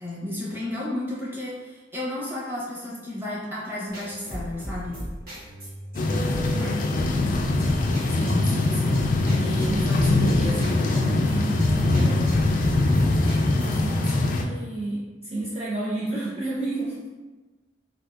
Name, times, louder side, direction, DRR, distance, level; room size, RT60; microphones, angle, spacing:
voice 1, 0.0-5.0, left 1 dB, 10° right, -7 dB, 0.8 m, -32 dB
sound 1, 3.9-13.9, equal, 55° right, 1.3 m, -36 dB
sound 2, 5.9-14.4, left 2 dB, 50° left, 0.3 m, -22 dB
voice 2, 8.1-12.8 13.6-17.1, right 1 dB, 35° right, -7 dB, 0.4 m, -32 dB
3.6 x 2.4 x 2.3 m, 1.2 s
head